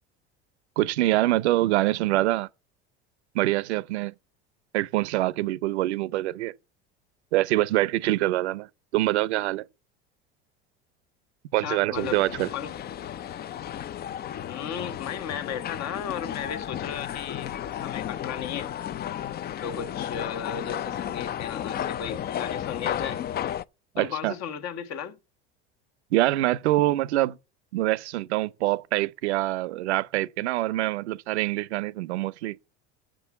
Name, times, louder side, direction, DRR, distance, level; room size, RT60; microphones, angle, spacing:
voice 1, 0.8-2.5 3.3-4.1 4.7-6.5 7.3-9.6 11.5-12.5 23.9-24.3 26.1-27.4 27.7-32.6, right 16 dB, 80° right, 0.7 m, -25 dB
voice 2, 11.6-12.2 12.5-12.8 14.5-18.7 19.6-23.2 24.0-25.2, left 8 dB, 55° left, 1.5 m, -35 dB
sound 1, 11.9-23.6, left 10 dB, 30° left, 0.5 m, -33 dB
7.2 x 6.2 x 7.1 m
hypercardioid pair, 85°, 33 cm